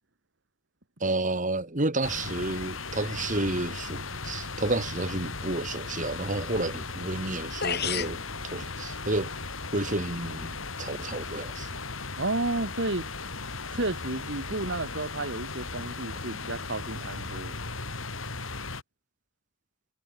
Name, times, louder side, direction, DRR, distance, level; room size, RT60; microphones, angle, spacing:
voice 1, 1.0-8.2 8.5-9.3 9.7-11.8, right 2 dB, 40° right, 2.3 m, -31 dB
sound 1, 2.0-18.8, left 3 dB, 75° left, 5.0 m, -37 dB
sound 2, 7.6-8.2, left 7 dB, 50° left, 5.5 m, -29 dB
voice 2, 12.2-13.1 13.7-17.6, right 2 dB, 60° right, 2.4 m, -32 dB
head